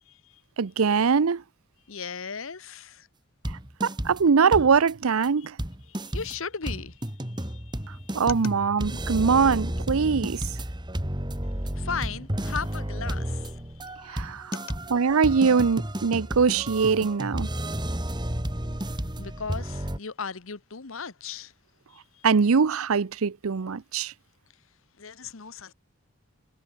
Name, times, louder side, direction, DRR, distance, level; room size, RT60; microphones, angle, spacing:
voice 1, 0.1-0.4 1.9-3.1 5.9-8.2 11.7-14.2 14.5-14.6 19.2-21.5 21.9-22.3 25.0-25.7, left 6 dB, 70° left, 1.1 m, -37 dB
voice 2, 0.6-1.4 3.8-5.6 8.1-10.5 14.1-14.5 14.9-17.5 22.2-24.1, right 5 dB, 80° right, 0.6 m, -22 dB
sound 1, 3.4-4.2 4.5-4.9 5.2-5.3 5.6-20.0, right 1 dB, 20° right, 2.6 m, -32 dB
head